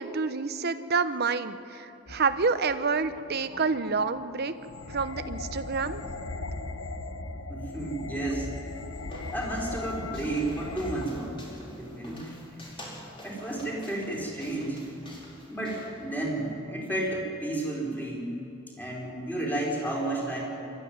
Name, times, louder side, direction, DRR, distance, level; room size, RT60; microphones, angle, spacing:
voice 1, 0.0-4.5 4.9-6.0, right 4 dB, 50° right, 11 dB, 0.9 m, -28 dB
sound 1, 2.1-11.1, left 2 dB, 90° left, 1.1 m, -39 dB
voice 2, 7.2-8.5 9.3-11.4 11.7-12.3 13.2-14.9 15.5-18.3 18.7-20.4, right 1 dB, 10° left, -3 dB, 4.7 m, -32 dB
sound 2, 8.4-16.5, equal, 25° left, 5.0 m, -48 dB
26.5 x 13.0 x 9.4 m, 2.8 s
head